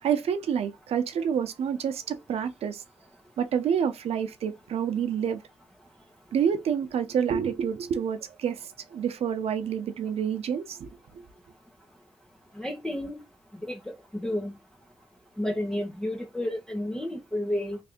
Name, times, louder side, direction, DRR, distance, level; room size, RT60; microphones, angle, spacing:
voice 1, 0.0-2.8 3.4-5.4 6.3-10.9, right 8 dB, 90° right, 0.6 m, -28 dB
voice 2, 12.6-13.2 13.6-14.5 15.4-17.8, left 1 dB, 5° left, 0.8 m, -31 dB
3.3 x 2.5 x 3.6 m
cardioid pair, 90°, 10 cm